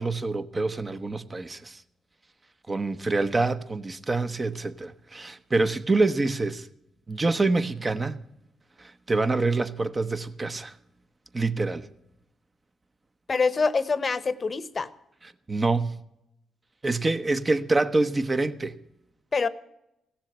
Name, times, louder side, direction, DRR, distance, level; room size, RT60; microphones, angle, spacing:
voice 1, 0.0-1.8 2.7-6.7 7.1-8.2 8.8-10.7 11.3-11.9 15.5-15.9 16.8-18.7, right 3 dB, 30° right, 1.0 m, -26 dB
voice 2, 13.3-14.9 19.3-19.5, left 4 dB, 40° left, 0.8 m, -25 dB
16.0 x 7.3 x 8.6 m
supercardioid pair, 65°, 0 cm